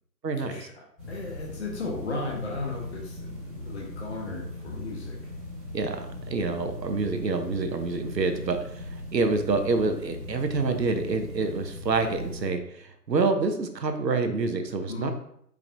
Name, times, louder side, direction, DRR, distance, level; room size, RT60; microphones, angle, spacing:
voice 1, 0.2-0.7 5.7-15.1, right 3 dB, 85° right, 7 dB, 0.8 m, -27 dB
sound 1, 1.0-12.5, left 1 dB, 5° right, 1.1 m, -39 dB
voice 2, 1.1-5.3 14.9-15.1, left 3 dB, 40° left, -2 dB, 0.8 m, -35 dB
4.7 x 2.5 x 3.3 m, 0.70 s
figure-of-eight pair, 145°, 49 cm